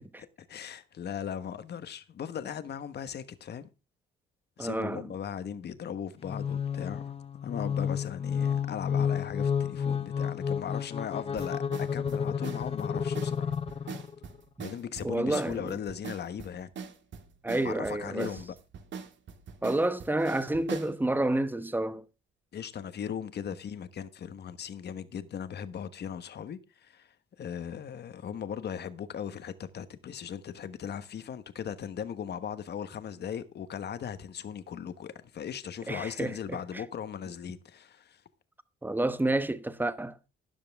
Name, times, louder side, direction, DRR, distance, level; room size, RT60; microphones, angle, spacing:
voice 1, 0.2-3.7 4.6-7.2 7.4-13.5 13.8-14.0 14.6-16.7 17.6-18.5 22.5-38.2, left 8 dB, 55° left, 1.3 m, -38 dB
voice 2, 4.6-5.1 15.0-15.8 17.4-18.3 19.6-22.0 35.9-36.6 38.8-40.2, right 1 dB, 10° right, 1.0 m, -29 dB
sound 1, 6.2-14.2, left 7 dB, 30° left, 0.8 m, -31 dB
sound 2, 11.4-21.0, right 6 dB, 65° right, 2.1 m, -43 dB
13.0 x 10.5 x 3.5 m
cardioid pair, 90°, 20 cm